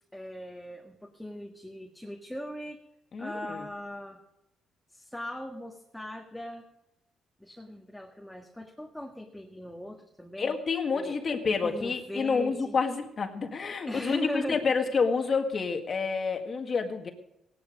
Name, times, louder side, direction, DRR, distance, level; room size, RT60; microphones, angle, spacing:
voice 1, 0.1-2.8 3.2-4.2 4.9-6.7 7.4-10.6 10.9-11.2 11.5-12.8 13.9-14.7, left 1 dB, 5° left, 1 dB, 1.6 m, -39 dB
voice 2, 3.1-3.7 10.4-17.1, left 5 dB, 45° left, 5 dB, 1.8 m, -29 dB
17.0 x 11.0 x 5.2 m, 0.86 s
cardioid pair, 90°, 0 cm